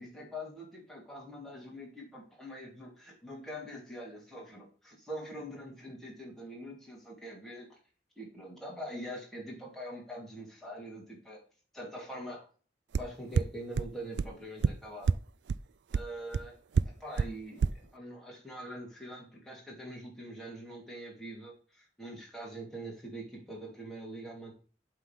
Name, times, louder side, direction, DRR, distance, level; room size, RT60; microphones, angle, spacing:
voice 1, 0.0-7.8 8.2-11.4 11.7-12.4 13.0-15.2 15.9-24.5, equal, ahead, -3 dB, 2.6 m, -44 dB
sound 1, 12.9-13.0 13.4-13.5 13.8-13.9 14.2-14.3 14.6-14.7 15.1-15.2 15.5-15.6 15.9-16.0 16.3-16.4 16.8-16.9 17.2-17.3 17.6-17.7, right 5 dB, 75° right, 0.4 m, -24 dB
8.0 x 3.8 x 5.8 m, 0.40 s
head